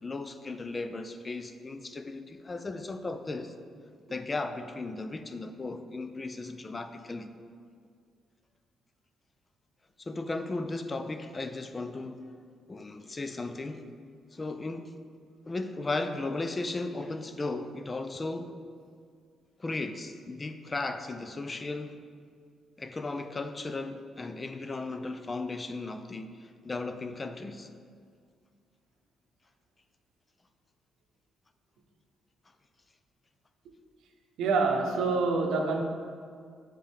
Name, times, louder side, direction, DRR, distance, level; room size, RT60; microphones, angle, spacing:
voice 1, 0.0-3.5 4.1-7.3 10.0-12.3 12.7-13.9 14.3-14.9 15.5-18.5 19.6-22.0 22.8-27.7, left 3 dB, 25° left, 9 dB, 0.4 m, -36 dB
voice 2, 34.4-35.8, right 4 dB, 85° right, 3 dB, 0.7 m, -26 dB
7.9 x 3.7 x 3.4 m, 2.1 s
cardioid pair, 90°, 0 cm